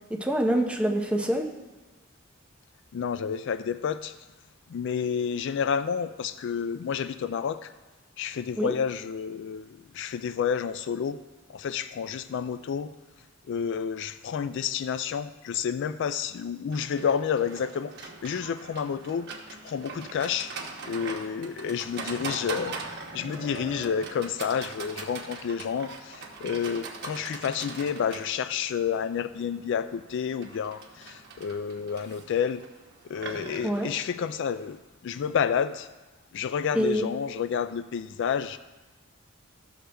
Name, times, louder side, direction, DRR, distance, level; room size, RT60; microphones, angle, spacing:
voice 1, 0.1-1.4 8.6-8.7 33.6-33.9 36.7-37.0, right 1 dB, 5° right, 1 dB, 0.8 m, -25 dB
voice 2, 2.9-4.1 4.7-7.7 8.2-11.2 11.5-12.9 13.5-19.3 19.6-20.5 20.8-22.8 23.1-32.6 33.0-34.8 35.0-35.9 36.3-38.6, left 7 dB, 60° left, 13 dB, 0.3 m, -30 dB
Livestock farm animals working animals, 16.7-34.8, right 4 dB, 55° right, 1.0 m, -41 dB
13.5 x 6.5 x 3.4 m, 1.2 s
head